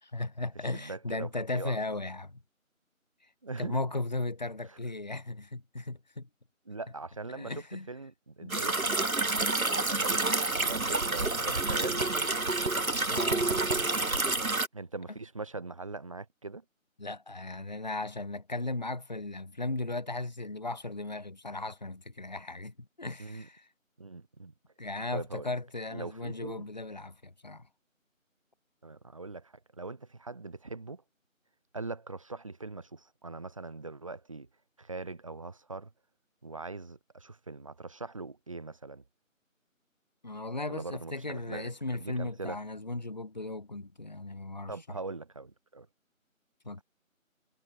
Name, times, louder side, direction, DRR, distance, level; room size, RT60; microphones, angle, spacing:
voice 1, 0.0-2.4 3.6-6.3 7.3-7.9 8.4-8.5 13.1-13.6 17.0-23.7 24.8-27.6 40.2-45.0 46.6-46.8, left 2 dB, 30° left, 4.3 m, -36 dB
voice 2, 0.7-1.8 3.4-3.8 4.7-4.8 6.7-8.8 9.9-10.2 10.5-12.4 14.7-16.6 23.2-23.5 24.0-24.5 25.1-25.5 25.9-26.7 28.8-31.0 31.7-34.5 34.8-35.9 36.4-39.0 40.7-41.7 42.0-42.6 44.7-45.9, right 3 dB, 25° right, 7.4 m, -41 dB
sound 1, 8.5-14.7, right 2 dB, 85° right, 2.0 m, -28 dB
figure-of-eight pair, 175°, 41 cm